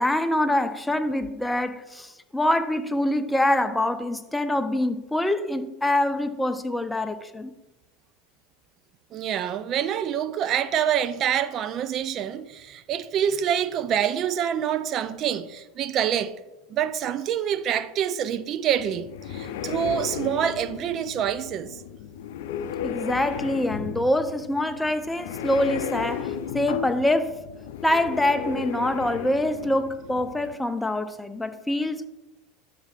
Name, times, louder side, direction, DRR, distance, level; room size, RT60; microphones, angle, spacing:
voice 1, 0.0-7.5 22.8-27.4 27.8-32.1, left 1 dB, 10° left, 0.6 m, -25 dB
voice 2, 9.1-16.3 16.7-21.8, right 9 dB, 45° right, 0.4 m, -26 dB
sound 1, 18.8-30.6, left 9 dB, 70° left, 0.5 m, -34 dB
10.5 x 7.5 x 2.5 m
hypercardioid pair, 85°, 0 cm